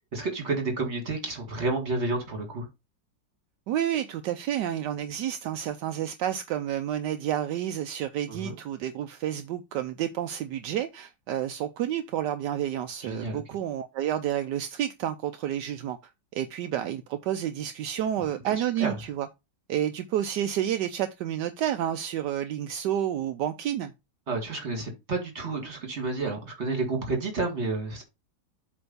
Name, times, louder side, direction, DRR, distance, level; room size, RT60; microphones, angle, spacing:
voice 1, 0.1-2.7 8.3-8.6 13.0-13.4 18.5-18.9 24.3-28.0, right 3 dB, 35° right, 2.3 m, -30 dB
voice 2, 3.7-16.0 16.3-19.3 19.7-23.9, right 11 dB, 75° right, 1.2 m, -30 dB
7.8 x 3.4 x 5.4 m
omnidirectional pair, 2.0 m